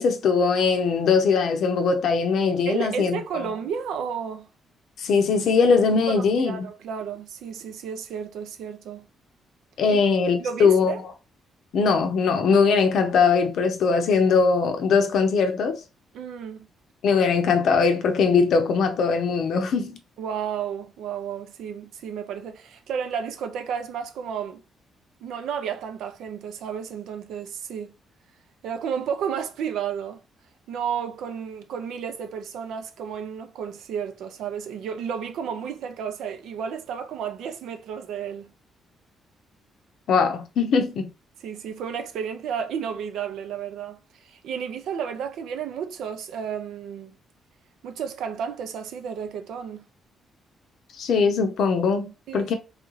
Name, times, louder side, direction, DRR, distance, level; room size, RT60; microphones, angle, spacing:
voice 1, 0.0-3.4 5.0-6.5 9.8-10.9 11.7-15.8 17.0-20.0 40.1-41.1 51.0-52.5, left 5 dB, 70° left, 0.6 m, -21 dB
voice 2, 2.7-4.5 6.1-9.1 9.9-10.0 10.4-11.0 16.1-16.7 20.2-24.6 25.2-27.9 28.6-30.2 30.7-38.5 41.4-47.2 47.8-49.8 52.3-52.5, right 7 dB, 80° right, 0.5 m, -32 dB
3.1 x 2.4 x 3.1 m
cardioid pair, 90°, 0 cm